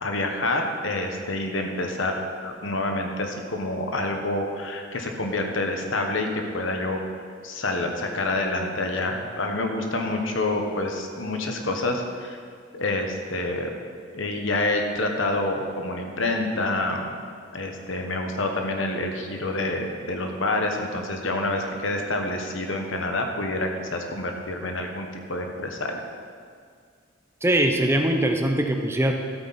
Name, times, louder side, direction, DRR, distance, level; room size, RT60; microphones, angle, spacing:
voice 1, 0.0-2.1 2.4-7.0 7.4-12.4 12.7-13.7 14.1-17.1 17.5-26.0, left 2 dB, 75° left, 3 dB, 1.2 m, -27 dB
voice 2, 27.4-29.1, right 1 dB, 15° right, 3 dB, 0.6 m, -22 dB
13.0 x 8.7 x 4.2 m, 2.1 s
head